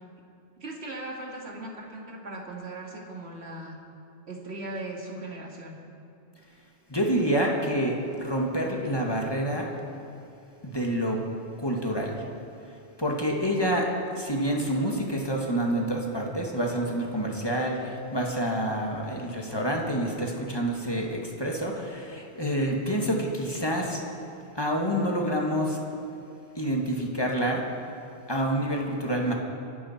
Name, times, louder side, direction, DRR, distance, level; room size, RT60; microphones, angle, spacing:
voice 1, 0.6-3.8 4.3-5.8, right 2 dB, 70° right, -1 dB, 2.2 m, -38 dB
voice 2, 6.9-9.7 10.6-11.2 11.6-12.2 13.0-13.9 14.1-24.0 24.6-25.8 26.6-27.6 28.3-29.3, right 1 dB, 20° left, 0 dB, 1.9 m, -27 dB
24.0 x 11.5 x 4.4 m, 2.8 s
omnidirectional pair, 1.1 m